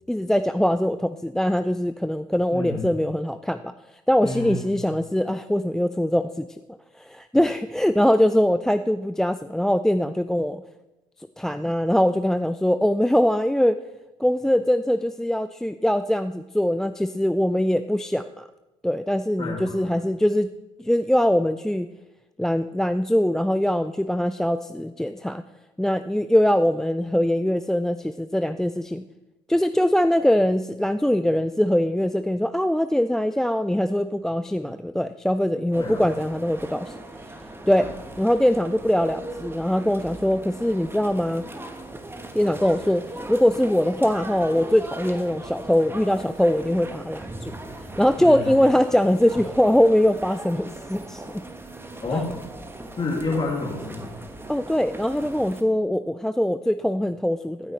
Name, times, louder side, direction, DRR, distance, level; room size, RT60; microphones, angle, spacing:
voice 1, 0.1-3.7 4.1-6.5 7.0-10.6 11.4-13.8 14.2-18.5 18.8-20.5 20.8-21.9 22.4-25.4 25.8-29.0 29.5-36.9 37.7-37.9 38.2-41.4 42.3-43.0 43.3-47.5 48.0-51.4 52.1-52.3 54.5-57.7, equal, 5° left, 12 dB, 0.3 m, -22 dB
voice 2, 2.5-2.9 4.2-4.8 19.4-20.0 35.8-36.1 37.8-37.9 48.2-48.5 52.0-52.3 53.0-54.1, left 3 dB, 30° left, -5 dB, 2.2 m, -29 dB
sound 1, 35.7-55.6, right 2 dB, 15° right, 1.2 m, -39 dB
14.5 x 8.9 x 3.2 m, 1.0 s
hypercardioid pair, 55°, 16 cm